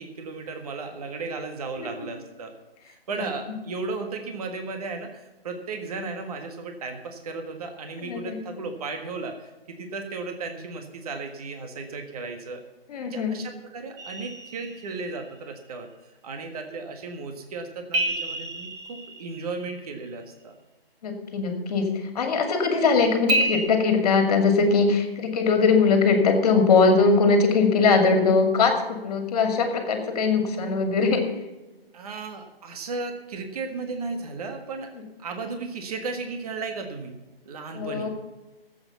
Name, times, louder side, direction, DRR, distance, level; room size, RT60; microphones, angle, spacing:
voice 1, 0.0-2.5 2.9-12.6 13.0-15.9 16.2-20.5 31.9-34.9 35.2-37.1 37.5-38.1, right 3 dB, 40° right, 5 dB, 1.7 m, -35 dB
voice 2, 8.0-8.4 12.9-13.3 21.0-31.3 37.7-38.1, left 4 dB, 40° left, 6 dB, 2.4 m, -21 dB
sound 1, 14.0-15.3 17.9-19.9 23.3-23.6, right 1 dB, 15° right, 1.8 m, -29 dB
13.5 x 8.1 x 7.0 m, 1.1 s
hypercardioid pair, 155°, 30 cm